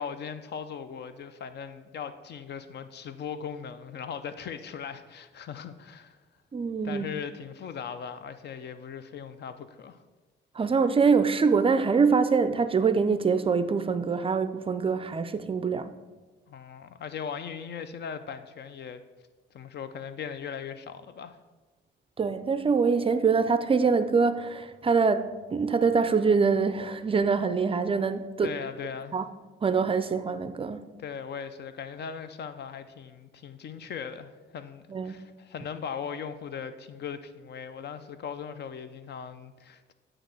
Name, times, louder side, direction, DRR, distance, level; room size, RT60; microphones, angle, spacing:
voice 1, 0.0-6.2 6.8-10.0 16.5-19.0 19.5-21.4 28.4-29.2 31.0-39.9, left 7 dB, 55° left, 0.5 m, -39 dB
voice 2, 6.5-7.0 10.6-15.9 22.2-28.5 29.1-29.2 29.6-30.8 34.9-35.2, right 5 dB, 30° right, 0.4 m, -24 dB
8.7 x 3.0 x 6.2 m
cardioid pair, 90°, 20 cm